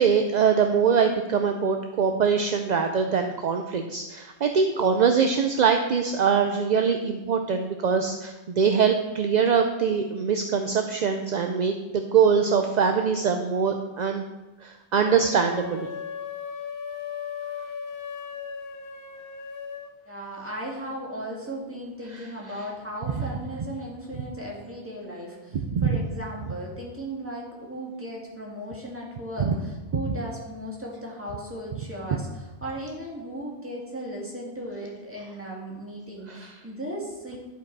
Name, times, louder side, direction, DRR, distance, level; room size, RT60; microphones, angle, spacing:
voice 1, 0.0-14.2 14.6-15.9 25.5-26.0 29.5-29.6 29.9-30.0 36.3-36.5, right 6 dB, 55° right, 5 dB, 0.5 m, -23 dB
sound 1, 15.0-19.9, left 7 dB, 60° left, 0.8 m, -36 dB
voice 2, 20.1-37.4, equal, 10° right, -3 dB, 1.8 m, -36 dB
11.0 x 4.9 x 4.6 m, 1.1 s
omnidirectional pair, 1.2 m